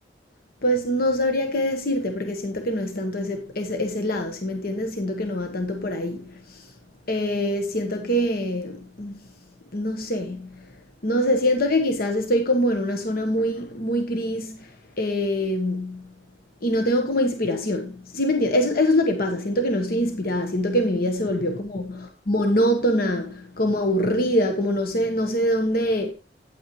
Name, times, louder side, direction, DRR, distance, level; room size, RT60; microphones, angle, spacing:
voice 1, 0.6-6.7 7.1-9.3 9.7-10.7 11.0-16.1 16.6-26.1, equal, 60° left, 1.2 m, -24 dB
9.3 x 8.7 x 3.1 m
head